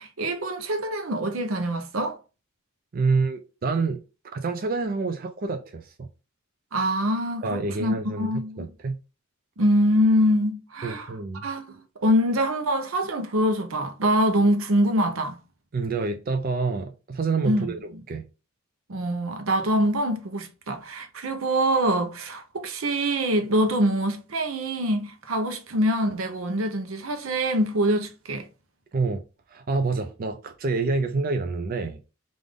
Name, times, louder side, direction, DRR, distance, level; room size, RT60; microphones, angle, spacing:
voice 1, 0.0-2.2 6.7-8.7 9.6-11.1 11.4-15.4 17.4-17.7 18.9-28.5, equal, 80° right, 0.7 m, -24 dB
voice 2, 2.9-4.0 4.3-6.1 7.4-8.3 8.6-9.0 10.8-11.5 15.7-17.8 18.1-18.2 28.9-29.2 29.5-32.0, right 4 dB, 45° right, 0.4 m, -27 dB
3.6 x 2.5 x 3.4 m
head